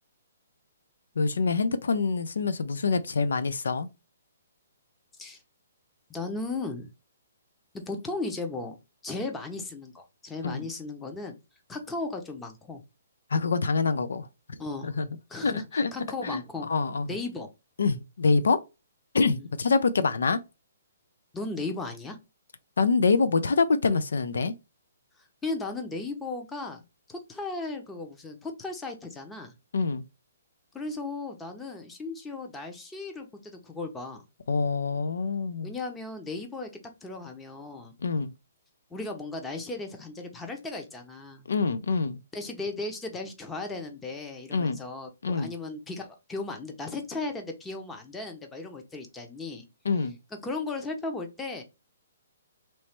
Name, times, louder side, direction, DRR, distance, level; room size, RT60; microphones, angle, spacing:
voice 1, 1.2-3.9 10.4-10.6 13.3-14.3 14.8-15.1 15.4-15.9 16.2-16.4 16.7-17.1 17.8-18.6 19.1-20.4 22.8-24.5 29.7-30.0 34.5-35.7 38.0-38.3 41.5-42.2 44.5-44.8 45.2-45.5 49.9-50.1, left 4 dB, 80° left, 0.5 m, -25 dB
voice 2, 6.1-6.9 7.7-8.8 9.0-11.4 11.7-12.8 14.6-14.9 15.3-16.7 17.1-17.5 19.3-19.5 21.3-22.2 25.4-26.8 27.1-29.5 30.7-34.2 35.6-36.7 37.0-37.9 38.9-41.5 42.3-49.6 50.3-51.6, left 3 dB, 10° left, 0.8 m, -36 dB
3.1 x 3.1 x 4.4 m
hypercardioid pair, 150°, 0 cm